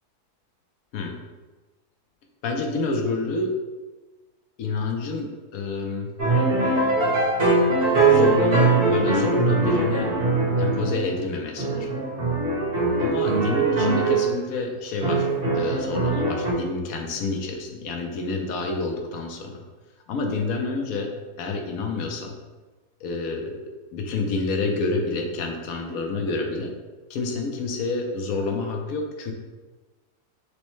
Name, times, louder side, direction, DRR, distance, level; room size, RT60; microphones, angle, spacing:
voice 1, 2.4-3.5 4.6-6.1 8.1-10.1 10.6-11.9 13.0-15.3 15.5-19.6 20.1-21.1 21.4-22.3 23.0-23.6 23.9-26.7 27.1-29.3, left 3 dB, 70° left, 2 dB, 1.0 m, -28 dB
sound 1, 6.2-11.2 11.6-14.3 15.0-16.5, right 3 dB, 40° right, 1.3 m, -21 dB
6.2 x 2.1 x 3.1 m, 1.2 s
omnidirectional pair, 1.6 m